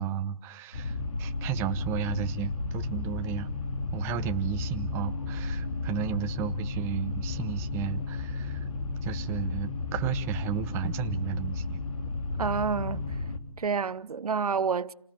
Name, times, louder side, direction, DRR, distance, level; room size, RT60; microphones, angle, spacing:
voice 1, 0.0-3.5 3.9-8.7 9.0-11.8, right 9 dB, 15° right, 1.0 m, -33 dB
sound 1, 0.7-13.4, left 3 dB, 65° left, 3.4 m, -33 dB
voice 2, 12.4-13.2 13.6-14.9, right 5 dB, 80° right, 0.9 m, -29 dB
30.0 x 19.0 x 7.7 m
hypercardioid pair, 160°, 19 cm